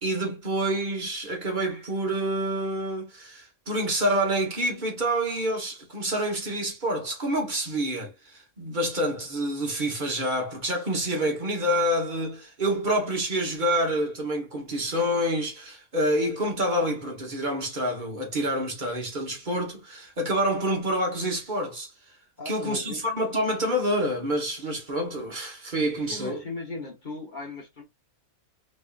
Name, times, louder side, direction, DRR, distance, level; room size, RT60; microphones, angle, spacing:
voice 1, 0.0-21.9 22.4-26.4, right 1 dB, 35° right, 1.3 m, -27 dB
voice 2, 22.4-23.0 26.1-27.8, left 3 dB, 35° left, 1.2 m, -37 dB
3.5 x 3.2 x 2.4 m
omnidirectional pair, 1.4 m